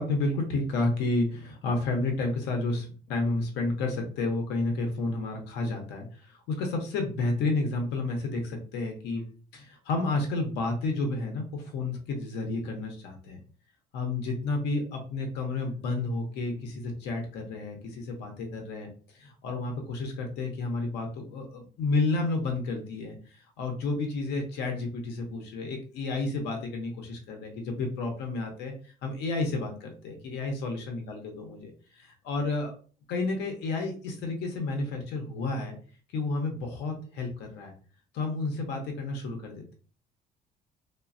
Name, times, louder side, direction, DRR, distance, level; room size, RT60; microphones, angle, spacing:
voice 1, 0.0-9.2 9.5-13.4 13.9-18.9 19.1-28.7 29.0-32.8 33.1-35.8 36.1-37.7 38.1-39.6, left 2 dB, 85° left, 3 dB, 0.7 m, -31 dB
3.1 x 2.1 x 2.4 m, 0.39 s
cardioid pair, 110°, 17 cm